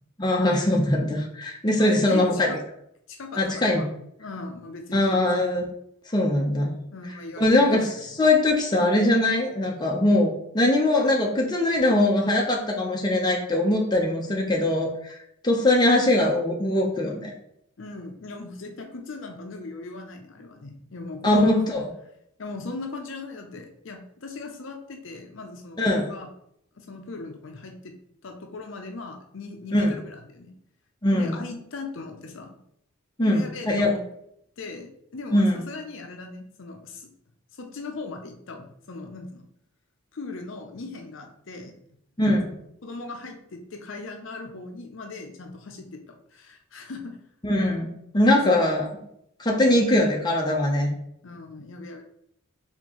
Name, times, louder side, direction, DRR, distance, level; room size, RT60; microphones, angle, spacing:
voice 1, 0.2-2.5 3.4-3.8 4.9-5.6 6.1-6.7 7.4-7.9 8.2-15.2 15.4-17.3 21.2-21.8 25.8-26.1 29.7-30.0 31.0-31.4 33.2-33.9 35.3-35.6 42.2-42.5 47.4-48.9 49.4-50.9, left 1 dB, 20° left, -1 dB, 0.7 m, -21 dB
voice 2, 1.8-2.6 3.1-3.9 4.2-5.2 6.9-7.8 8.1-8.2 17.8-21.8 22.4-26.3 26.7-27.9 28.2-30.6 31.1-32.6 33.2-34.0 34.6-37.1 37.5-39.4 40.1-41.7 42.8-47.2 48.2-48.7 49.7-49.8 51.2-52.0, left 3 dB, 60° left, 4 dB, 0.6 m, -38 dB
4.4 x 3.6 x 3.0 m, 0.73 s
head